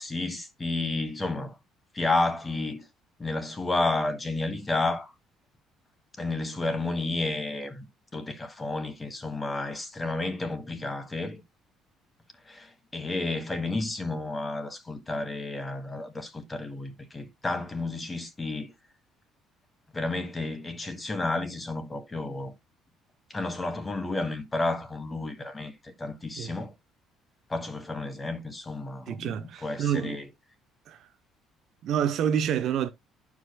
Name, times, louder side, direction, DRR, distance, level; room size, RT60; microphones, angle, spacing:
voice 1, 0.0-1.6 1.9-2.9 3.2-5.1 6.2-7.9 8.1-11.4 12.5-18.7 19.9-22.5 23.3-26.7 27.5-30.3, left 2 dB, 20° left, 1.3 m, -31 dB
voice 2, 29.1-30.2 30.9-31.1 31.8-32.9, right 9 dB, 60° right, 0.7 m, -28 dB
12.0 x 4.8 x 2.2 m
cardioid pair, 120°, 0 cm